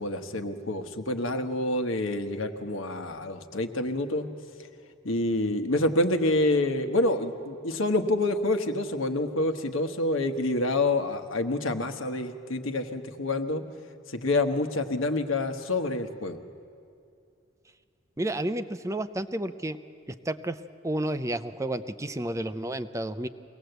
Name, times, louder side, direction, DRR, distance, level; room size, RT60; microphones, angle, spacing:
voice 1, 0.0-4.3 5.0-13.6 14.1-16.4, left 2 dB, 85° left, 7 dB, 1.2 m, -27 dB
voice 2, 18.2-19.8 20.3-20.6 20.8-23.3, right 1 dB, 15° right, 11 dB, 0.5 m, -31 dB
23.0 x 18.0 x 8.0 m, 2.4 s
head